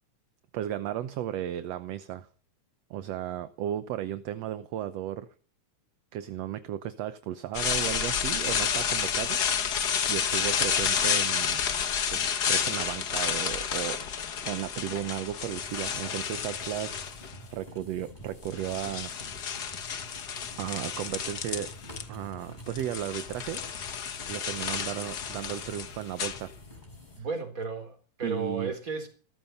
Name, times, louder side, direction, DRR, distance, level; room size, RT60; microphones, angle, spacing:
voice 1, 0.5-2.3 2.9-5.3 6.1-9.4 10.1-11.6 12.1-14.0 14.4-17.1 17.5-19.9 20.6-21.7 22.1-23.6 24.3-26.5 27.2-27.3 28.2-28.7, right 12 dB, 65° right, 1.9 m, -35 dB
sound 1, 7.5-17.5 18.2-22.0 22.3-26.9, left 7 dB, 50° left, 1.2 m, -30 dB
sound 2, 15.6-27.2, equal, 15° left, 4.4 m, -49 dB
voice 2, 27.2-29.1, right 4 dB, 25° right, 3.9 m, -34 dB
17.0 x 14.0 x 5.8 m
omnidirectional pair, 3.4 m